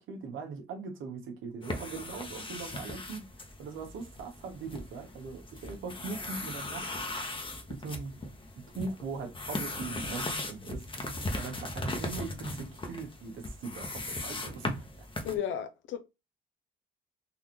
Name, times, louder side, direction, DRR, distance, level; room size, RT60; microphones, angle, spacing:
voice 1, 0.1-6.9 7.7-8.1 8.7-10.8 11.3-14.7, right 4 dB, 80° right, 1.2 m, -40 dB
sound 1, 1.6-15.4, left 2 dB, 25° left, 1.0 m, -38 dB
voice 2, 15.2-16.0, left 9 dB, 75° left, 0.7 m, -33 dB
4.0 x 2.6 x 3.0 m
cardioid pair, 90°, 20 cm